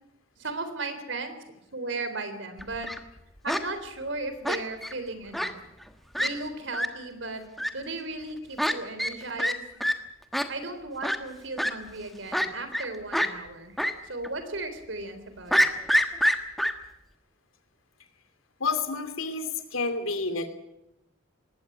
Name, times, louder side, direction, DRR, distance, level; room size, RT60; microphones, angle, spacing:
voice 1, 0.4-1.4 1.7-2.9 3.4-5.6 6.2-7.4 7.7-9.6 10.5-13.8 14.0-15.7, right 2 dB, 65° right, 9 dB, 3.7 m, -36 dB
Fowl, 2.6-3.0 3.5-3.6 4.4-4.9 5.3-5.5 5.8-5.9 6.1-6.3 6.7-6.9 7.6-7.7 8.6-8.7 9.0-9.1 9.4-9.5 9.8-9.9 10.3-10.5 11.0-11.2 11.6-11.7 12.3-12.9 13.1-13.3 13.8-13.9 14.2-14.3 15.5-16.7, equal, ahead, 1.3 m, -25 dB
voice 2, 18.6-20.5, left 4 dB, 90° left, 8 dB, 2.8 m, -29 dB
20.0 x 17.0 x 9.5 m, 0.87 s
head